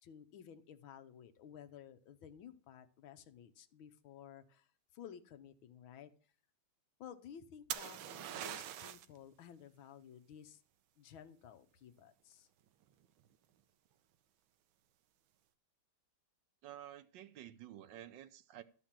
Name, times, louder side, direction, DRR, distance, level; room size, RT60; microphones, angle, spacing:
voice 1, 0.0-4.7 4.9-6.1 7.0-10.6 11.0-12.5, left 9 dB, 80° left, 1.7 m, -54 dB
sound 1, 7.7-9.2 12.8-13.3, right 11 dB, 90° right, 1.5 m, -43 dB
voice 2, 16.6-18.6, right 12 dB, 70° right, 1.3 m, -51 dB
13.0 x 5.2 x 7.4 m
omnidirectional pair, 2.2 m